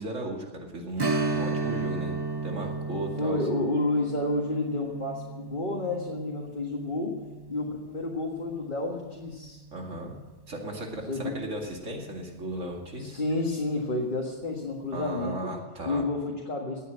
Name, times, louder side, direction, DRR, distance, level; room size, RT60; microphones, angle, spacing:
voice 1, 0.0-2.2 2.4-3.4 9.7-10.1 10.5-13.2 14.9-16.0, right 1 dB, 85° right, 1 dB, 2.7 m, -36 dB
Strum, 1.0-10.2 10.5-10.6 13.1-13.3 13.8-13.9, right 3 dB, 25° right, 0.6 m, -34 dB
voice 2, 3.2-7.2 7.5-9.6 11.1-11.4 13.0-15.6 15.9-16.9, left 2 dB, 40° left, -1 dB, 1.8 m, -30 dB
17.5 x 8.3 x 9.1 m, 1.2 s
omnidirectional pair, 1.3 m